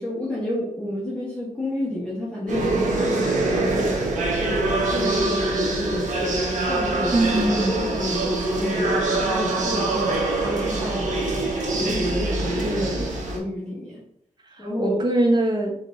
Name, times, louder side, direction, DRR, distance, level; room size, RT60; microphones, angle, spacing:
voice 1, 0.0-3.9 4.4-6.4 6.7-7.2 7.5-11.2 11.7-12.8 13.3-14.0 14.6-15.0, left 1 dB, 10° left, -8 dB, 1.3 m, -30 dB
sound 1, 2.5-13.4, right 2 dB, 85° right, 1.0 m, -24 dB
voice 2, 7.1-7.8 12.6-13.2 14.4-15.7, right 1 dB, 35° right, 1 dB, 1.0 m, -23 dB
4.7 x 2.8 x 3.8 m, 0.70 s
wide cardioid pair, 150°, 13 cm